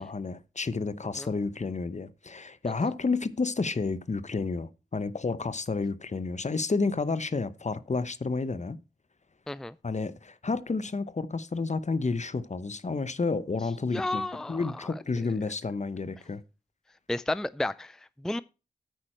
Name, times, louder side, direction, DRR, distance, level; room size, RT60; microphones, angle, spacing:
voice 1, 0.0-8.8 9.8-14.2 14.5-16.4, left 4 dB, 45° left, 0.9 m, -30 dB
voice 2, 13.9-14.7 17.1-18.4, left 1 dB, 5° left, 0.4 m, -32 dB
9.5 x 8.9 x 4.4 m
cardioid pair, 45°, 16 cm